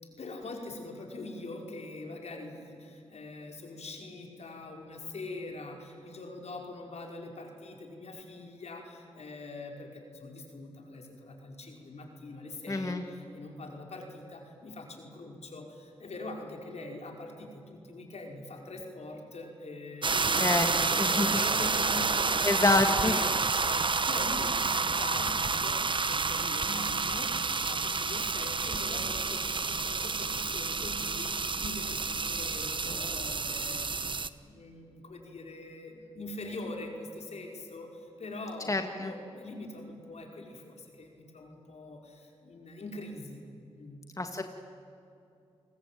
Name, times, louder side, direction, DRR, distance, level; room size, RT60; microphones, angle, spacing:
voice 1, 0.0-25.8 26.1-33.8 34.4-43.4 43.7-44.0, left 2 dB, 70° left, 1 dB, 5.2 m, -43 dB
voice 2, 12.7-13.0 20.4-20.7 21.0-21.4 22.4-23.1 38.7-39.1 44.2-44.4, left 2 dB, 30° left, 5 dB, 1.9 m, -27 dB
sound 1, 20.0-34.3, right 4 dB, 45° right, 1.1 m, -29 dB
29.5 x 20.0 x 9.3 m, 2.6 s
cardioid pair, 50°, 12 cm